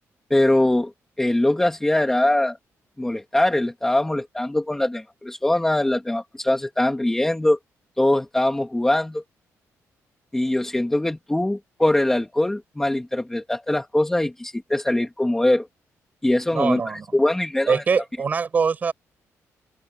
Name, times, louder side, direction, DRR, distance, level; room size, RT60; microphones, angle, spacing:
voice 1, 0.3-0.9 1.2-2.6 3.0-7.6 8.0-9.2 10.3-15.7 16.2-17.8, left 1 dB, 5° left, 1.7 m, -22 dB
voice 2, 16.5-17.1 17.7-18.9, right 5 dB, 30° right, 6.3 m, -23 dB
open air
wide cardioid pair, 180°, 6 cm